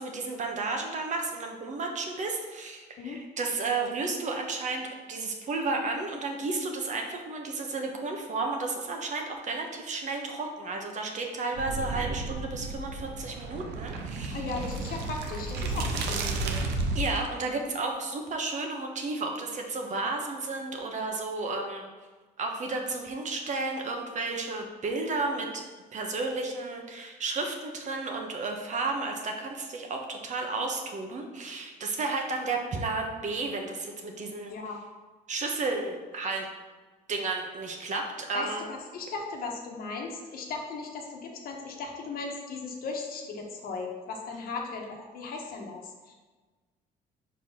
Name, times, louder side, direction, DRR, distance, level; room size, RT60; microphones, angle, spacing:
voice 1, 0.0-14.4 16.9-21.9 22.4-25.6 25.9-34.5 35.3-36.5 37.1-38.7, right 3 dB, 45° right, 2 dB, 1.2 m, -32 dB
sound 1, 11.6-17.3, right 2 dB, 85° right, 0.8 m, -32 dB
voice 2, 14.3-16.6 34.5-34.8 38.3-46.1, left 4 dB, 60° left, 1 dB, 1.3 m, -37 dB
5.2 x 4.2 x 5.7 m, 1.3 s
cardioid pair, 110°, 17 cm